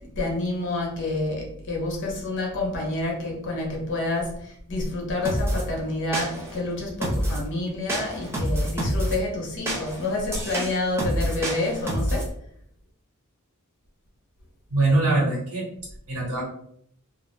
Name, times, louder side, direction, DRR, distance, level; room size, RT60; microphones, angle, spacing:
voice 1, 0.2-12.3, left 2 dB, 55° left, -1 dB, 0.8 m, -28 dB
sound 1, 5.2-5.6 6.1-6.6 7.0-7.5 7.9-9.2 9.7-12.3, equal, 10° right, 0.5 m, -27 dB
voice 2, 14.7-15.6 16.1-16.4, right 2 dB, 75° right, -4 dB, 1.3 m, -22 dB
2.4 x 2.1 x 3.0 m, 0.68 s
head